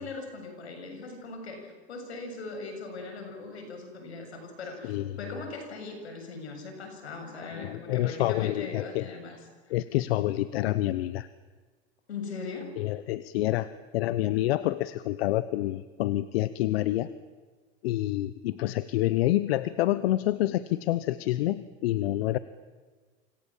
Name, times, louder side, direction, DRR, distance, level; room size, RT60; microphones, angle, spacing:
voice 1, 0.0-9.4 9.7-9.8 10.1-10.4 12.1-12.8, left 3 dB, 90° left, 5 dB, 7.3 m, -40 dB
voice 2, 7.5-9.1 9.7-11.3 12.8-17.1 17.8-22.4, left 15 dB, 70° left, 15 dB, 1.1 m, -28 dB
28.5 x 26.5 x 7.4 m, 1.4 s
hypercardioid pair, 105°, 32 cm